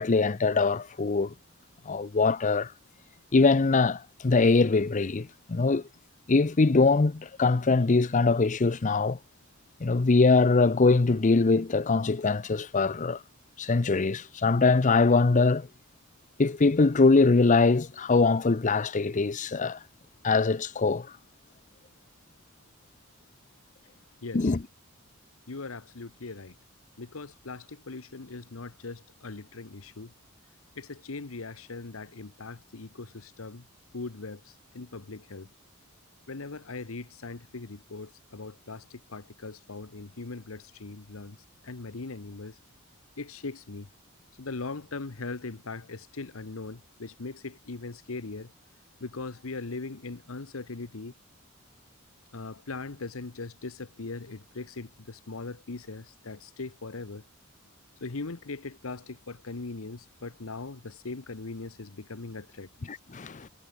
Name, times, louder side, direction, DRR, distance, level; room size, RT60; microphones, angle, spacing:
voice 1, 0.0-1.3 1.9-2.7 3.3-5.8 6.3-9.2 9.8-13.2 13.6-15.7 16.4-19.8 20.2-21.1 24.3-24.6 62.9-63.5, left 3 dB, 35° left, 0.6 m, -23 dB
voice 2, 24.2-24.5 25.5-26.5 27.0-30.1 30.7-33.7 33.9-35.5 36.3-41.4 41.6-42.6 43.2-43.9 44.4-48.5 49.0-51.1 52.3-57.2 58.0-62.7, left 3 dB, 70° left, 1.1 m, -40 dB
head